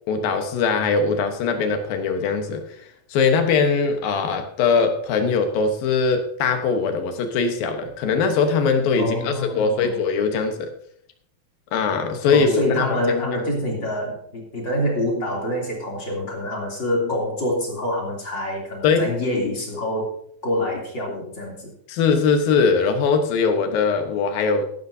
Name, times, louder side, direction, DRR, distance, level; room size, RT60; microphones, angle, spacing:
voice 1, 0.1-2.7 3.1-10.7 11.7-13.0 18.8-19.1 21.9-24.7, left 5 dB, 75° left, 6 dB, 2.9 m, -21 dB
voice 2, 9.0-10.0 12.3-20.1 20.4-21.7, left 1 dB, 30° left, -1 dB, 3.4 m, -26 dB
15.0 x 12.0 x 2.8 m, 0.65 s
omnidirectional pair, 4.4 m